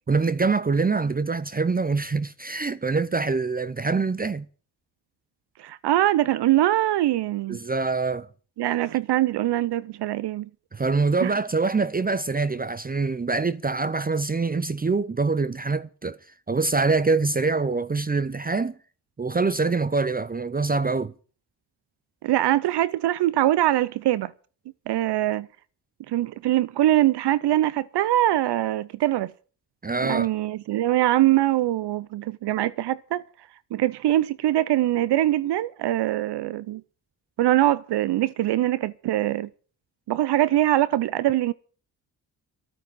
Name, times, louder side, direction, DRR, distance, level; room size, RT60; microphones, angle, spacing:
voice 1, 0.1-4.5 7.5-8.3 10.7-16.2 16.5-18.7 19.2-21.1 29.8-30.3, right 4 dB, 20° right, 0.6 m, -24 dB
voice 2, 5.6-7.6 8.6-10.5 11.2-11.3 22.2-24.3 24.9-25.5 26.1-29.3 30.0-33.2 33.7-36.8 37.4-39.5 40.1-41.5, right 14 dB, 80° right, 0.6 m, -23 dB
12.5 x 9.3 x 9.0 m
cardioid pair, 70°, 40 cm